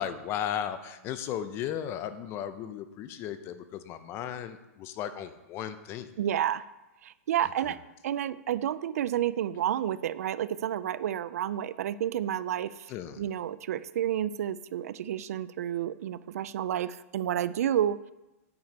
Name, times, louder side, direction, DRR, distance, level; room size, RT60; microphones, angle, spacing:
voice 1, 0.0-6.1 7.7-7.8 12.9-13.2, left 10 dB, 30° left, 11 dB, 0.6 m, -35 dB
voice 2, 6.2-6.6 7.0-7.8 8.0-12.9 13.2-18.1, right 11 dB, 75° right, 16 dB, 0.4 m, -30 dB
9.6 x 6.8 x 4.2 m, 0.97 s
hypercardioid pair, 145°, 8 cm